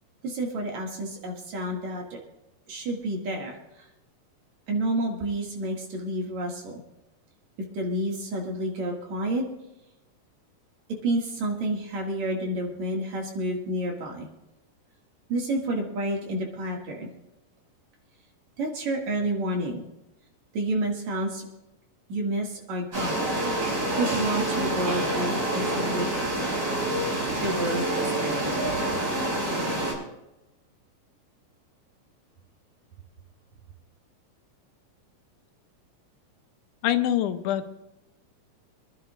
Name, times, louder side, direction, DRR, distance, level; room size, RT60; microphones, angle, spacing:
voice 1, 0.2-2.2 2.7-3.9 4.7-6.8 7.7-9.4 11.0-14.3 15.3-17.1 18.6-19.8 20.5-21.5 22.1-23.2 24.0-26.3 27.4-28.5, right 1 dB, 70° right, 0 dB, 3.3 m, -29 dB
sound 1, 22.9-29.9, right 1 dB, 35° right, 5.4 m, -27 dB
voice 2, 36.8-37.7, left 11 dB, 85° left, 9 dB, 2.3 m, -25 dB
27.0 x 10.5 x 2.5 m, 0.95 s
omnidirectional pair, 3.5 m